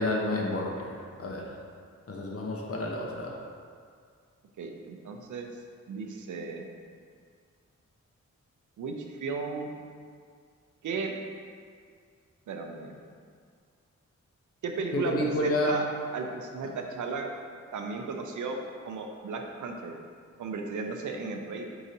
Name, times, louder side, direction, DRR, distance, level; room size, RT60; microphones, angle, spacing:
voice 1, 0.0-1.6 2.1-3.4 14.9-15.8, left 1 dB, 50° left, -1 dB, 0.7 m, -30 dB
voice 2, 4.6-5.5 5.9-6.7 8.8-8.9 9.2-9.7 10.8-11.2 12.5-13.0 14.6-15.8 16.1-17.3 17.7-20.0 20.4-21.7, right 4 dB, 85° right, 3 dB, 0.5 m, -35 dB
4.7 x 2.6 x 4.1 m, 2.1 s
wide cardioid pair, 135°, 29 cm